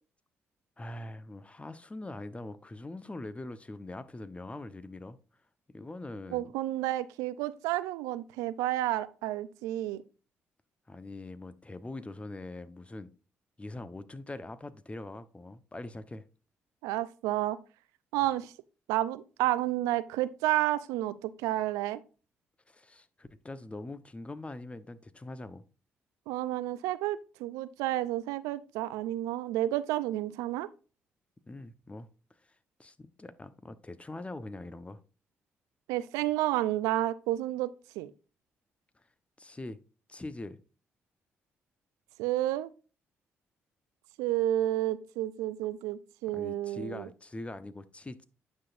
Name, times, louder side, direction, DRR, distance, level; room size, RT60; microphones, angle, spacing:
voice 1, 0.8-5.2 5.7-6.5 10.9-13.1 13.6-16.2 22.7-25.6 31.5-32.1 32.4-32.5 32.8-35.0 39.0-39.1 39.4-39.8 40.1-40.6 46.3-48.2, left 2 dB, 20° left, 1.0 m, -43 dB
voice 2, 6.3-10.0 16.8-17.6 18.1-18.5 18.9-22.0 26.3-30.7 35.9-37.7 38.0-38.1 42.2-42.7 44.2-47.1, right 14 dB, 85° right, 0.5 m, -30 dB
9.4 x 6.0 x 2.6 m
hypercardioid pair, 50°, 6 cm